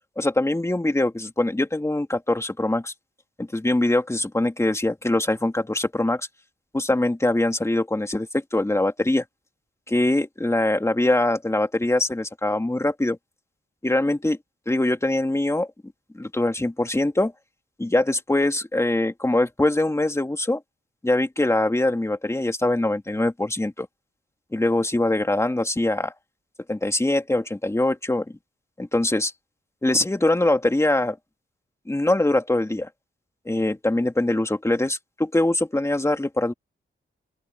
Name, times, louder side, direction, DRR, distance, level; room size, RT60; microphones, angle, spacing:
voice 1, 0.2-2.9 3.4-6.3 6.7-9.2 9.9-13.2 13.8-14.4 14.7-15.7 16.1-17.3 17.8-20.6 21.0-23.9 24.5-26.1 26.7-28.2 28.8-29.3 29.8-31.2 31.9-32.9 33.5-36.5, left 2 dB, 15° left, 2.4 m, -23 dB
open air
wide cardioid pair, 110°, 21 cm